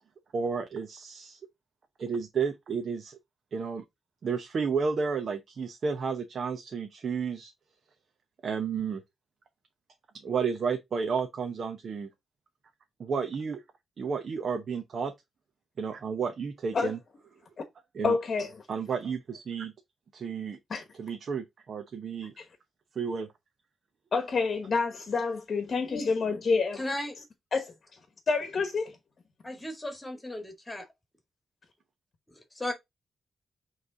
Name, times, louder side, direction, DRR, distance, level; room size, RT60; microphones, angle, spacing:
voice 1, 0.3-1.4 2.0-3.2 3.5-3.8 4.2-7.5 8.4-9.0 10.2-12.1 13.0-13.6 14.0-15.1 15.8-17.0 17.9-18.2 18.7-19.7 20.1-20.6 21.0-22.3 23.0-23.3, right 5 dB, 50° right, 0.8 m, -32 dB
voice 2, 18.0-18.6 20.7-20.8 22.4-22.5 24.1-26.8 27.5-27.6 28.3-28.8, left 4 dB, 45° left, 1.1 m, -28 dB
voice 3, 26.8-27.1 29.5-30.9 32.6-32.7, left 1 dB, 10° left, 1.8 m, -35 dB
7.8 x 3.3 x 3.8 m
wide cardioid pair, 140°, 0 cm